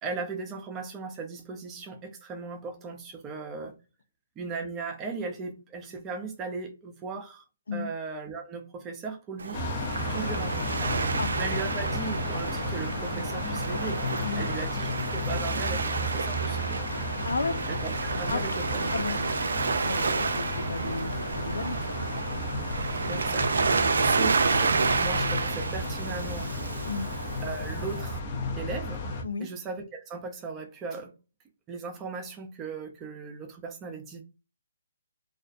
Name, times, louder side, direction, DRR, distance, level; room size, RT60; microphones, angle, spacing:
voice 1, 0.0-3.8 4.4-7.4 7.7-9.6 10.0-10.8 11.0-14.0 14.3-16.9 17.7-18.9 23.1-23.5 24.0-26.8 27.4-28.2 28.6-29.0 29.4-31.1 31.7-34.2, right 4 dB, 20° right, 0.6 m, -37 dB
Waves surf, 9.4-28.2, right 4 dB, 70° right, 0.3 m, -30 dB
sound 1, 9.5-29.2, left 2 dB, 30° left, 0.7 m, -33 dB
voice 2, 17.2-17.6 18.3-18.4 18.9-19.2 19.8-22.0 23.8-24.0 26.9-27.1 29.2-29.5, left 4 dB, 75° left, 0.4 m, -33 dB
2.4 x 2.1 x 2.5 m
figure-of-eight pair, 145°, 0 cm